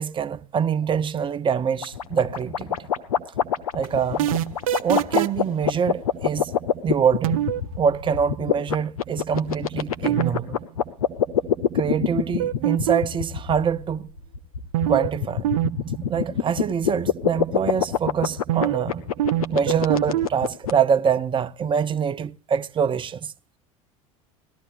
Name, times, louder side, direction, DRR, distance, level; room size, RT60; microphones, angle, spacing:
voice 1, 0.0-2.8 3.7-4.3 4.8-6.5 6.8-7.4 7.8-10.6 11.7-14.1 14.9-15.5 16.1-19.0 19.5-23.3, right 7 dB, 25° right, 0.7 m, -24 dB
sound 1, 1.8-20.7, left 9 dB, 80° left, 1.1 m, -24 dB
sound 2, 3.8-5.5 7.2-7.6 10.0-10.3 10.6-10.7 12.4-13.2 14.7-15.1 15.4-15.7 15.9-16.0 18.5-18.9 19.2-20.3, right 13 dB, 70° right, 0.5 m, -23 dB
19.0 x 13.5 x 2.5 m
hypercardioid pair, 75°, 18 cm